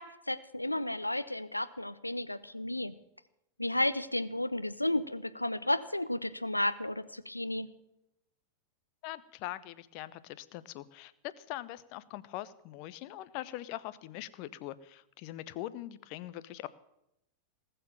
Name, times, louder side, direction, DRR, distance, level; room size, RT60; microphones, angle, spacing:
voice 1, 0.0-2.9 3.6-7.7, left 1 dB, 85° left, 12 dB, 0.8 m, -33 dB
voice 2, 9.0-16.7, left 15 dB, 45° left, 15 dB, 0.8 m, -42 dB
19.5 x 6.9 x 8.8 m, 0.83 s
figure-of-eight pair, 90°, 0 cm